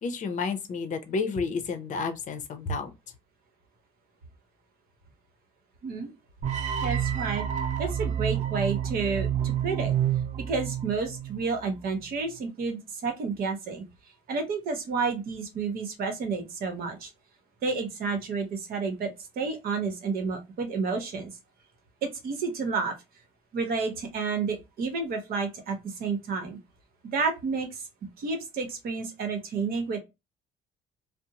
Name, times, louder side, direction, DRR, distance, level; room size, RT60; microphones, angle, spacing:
voice 1, 0.0-2.9, left 4 dB, 45° left, 0.6 m, -31 dB
sound 1, 6.4-11.5, right 9 dB, 45° right, 0.4 m, -29 dB
voice 2, 6.8-7.4 7.8-9.9 10.5-13.8 14.3-17.1 17.6-21.3 22.0-23.0 23.5-26.6 27.1-27.8 28.2-30.0, right 4 dB, 60° right, 0.9 m, -30 dB
2.5 x 2.0 x 2.8 m
cardioid pair, 110°, 17 cm